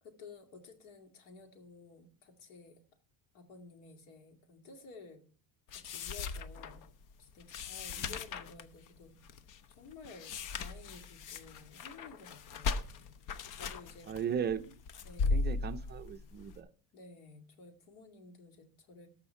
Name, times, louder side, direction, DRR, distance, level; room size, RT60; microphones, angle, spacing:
voice 1, 0.0-2.8 3.3-5.2 5.7-6.8 7.2-9.1 9.7-12.8 13.5-14.1 15.0-15.6 16.9-19.1, left 4 dB, 80° left, 5 dB, 2.3 m, -53 dB
sound 1, 5.7-16.6, left 4 dB, 55° left, 0.8 m, -38 dB
voice 2, 14.1-14.8 15.3-16.7, right 8 dB, 30° right, 9 dB, 0.5 m, -37 dB
13.5 x 5.8 x 5.6 m, 0.43 s
cardioid pair, 150°, 37 cm